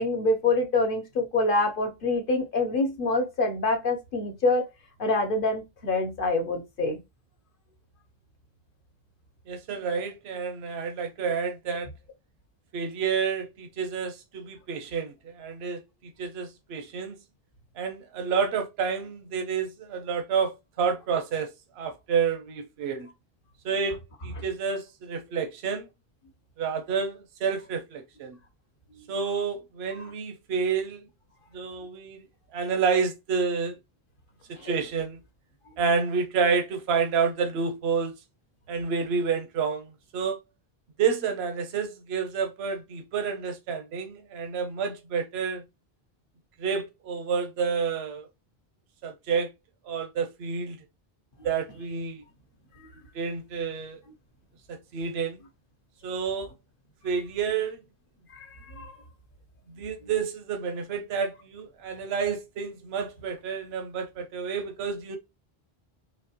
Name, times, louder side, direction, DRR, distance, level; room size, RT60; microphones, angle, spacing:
voice 1, 0.0-4.7 5.0-7.0 24.4-24.5 28.9-29.0 34.6-34.7 52.8-52.9 58.3-58.9 60.0-60.1, left 2 dB, 60° left, 1.1 m, -26 dB
voice 2, 9.5-11.9 12.7-17.2 17.8-21.5 21.8-23.1 23.6-24.0 24.2-25.9 26.6-28.4 29.1-31.0 31.5-32.2 32.5-33.7 34.5-35.2 35.8-38.1 38.7-40.4 41.0-45.6 46.6-48.3 49.0-49.5 49.9-50.8 51.4-52.2 53.1-54.0 54.7-55.4 56.0-56.5 57.0-57.8 59.7-65.2, right 6 dB, 85° right, 0.9 m, -29 dB
4.2 x 3.0 x 2.8 m
omnidirectional pair, 1.0 m